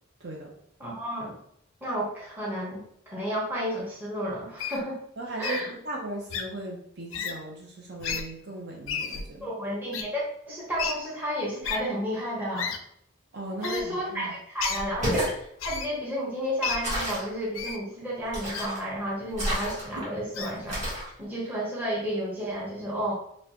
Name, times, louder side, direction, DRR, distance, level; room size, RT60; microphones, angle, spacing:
voice 1, 0.2-0.5 5.2-9.5 13.3-14.3, right 2 dB, 50° right, -1 dB, 0.6 m, -37 dB
voice 2, 0.8-1.4 1.8-5.0 5.4-5.7 9.4-12.8 13.6-20.9 21.2-23.1, equal, 10° right, -5 dB, 0.9 m, -32 dB
Wild animals, 4.6-4.8 5.4-5.6 6.3-6.4 7.1-7.3 8.0-8.2 8.9-9.2 9.9-10.0 10.8-10.9 11.6-11.8 12.6-12.8 13.6-13.8 14.6-14.8 15.6-15.9 16.6-16.8 17.5-17.8 18.5-18.7 19.4-19.6 20.3-20.5, left 7 dB, 75° left, 0.4 m, -32 dB
sound 1, 14.9-15.4 16.8-17.3 18.3-18.8 19.3-20.1 20.7-21.1, equal, 35° right, 1.4 m, -30 dB
4.4 x 2.2 x 2.8 m, 0.70 s
head